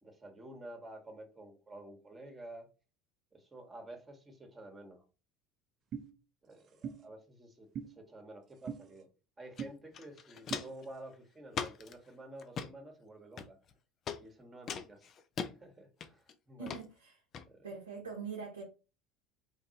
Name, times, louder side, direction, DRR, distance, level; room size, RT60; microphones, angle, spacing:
voice 1, 0.0-2.7 3.3-5.1 6.4-9.1 9.4-13.6 14.2-15.1 15.5-16.8 17.5-17.7, right 1 dB, 20° right, 1.3 m, -51 dB
sound 1, 5.9-6.1 6.8-7.0 7.7-7.9 8.7-8.8 9.6-9.7 10.5-10.6, right 7 dB, 45° right, 0.7 m, -40 dB
Walk footsteps, 9.6-9.7 9.9-10.8 11.5-11.9 12.4-12.7 13.4-13.7 14.1-14.2 14.7-15.5 16.0-16.3 16.7-16.8 17.3-17.4, left 7 dB, 45° left, 0.4 m, -39 dB
voice 2, 16.6-17.2 17.6-18.6, right 5 dB, 90° right, 0.7 m, -43 dB
3.6 x 2.6 x 2.8 m
hypercardioid pair, 70°, 0 cm